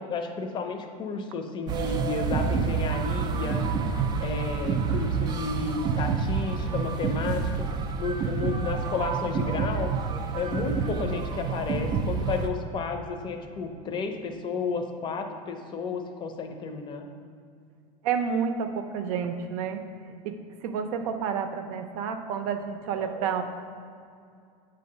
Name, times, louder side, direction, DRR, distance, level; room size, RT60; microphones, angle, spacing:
voice 1, 0.0-3.7 4.2-7.7 8.0-9.9 10.3-17.1, left 4 dB, 25° left, 5 dB, 0.6 m, -32 dB
sound 1, 1.7-12.5, right 5 dB, 20° right, 0.3 m, -28 dB
voice 2, 18.0-20.3 20.6-23.4, right 7 dB, 70° right, 7 dB, 0.6 m, -30 dB
8.0 x 2.8 x 5.2 m, 2.3 s
supercardioid pair, 140°, 20 cm